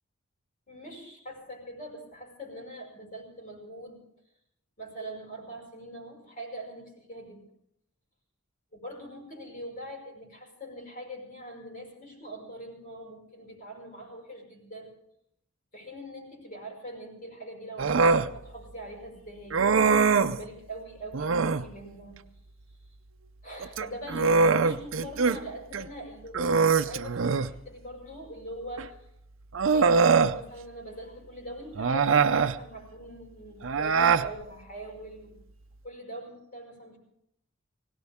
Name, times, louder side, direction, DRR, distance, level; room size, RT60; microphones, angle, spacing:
voice 1, 0.7-4.0 4.8-7.4 8.7-14.9 15.7-22.2 23.4-29.1 29.6-35.4 35.8-37.0, equal, 40° left, 0 dB, 5.7 m, -42 dB
Human voice, 17.8-18.3 19.5-20.4 21.1-21.7 23.6-25.4 25.7-25.9 26.3-27.6 28.8-28.9 29.5-30.4 31.7-32.6 33.6-34.3, right 5 dB, 65° right, 0.6 m, -23 dB
20.5 x 18.0 x 3.6 m, 0.74 s
head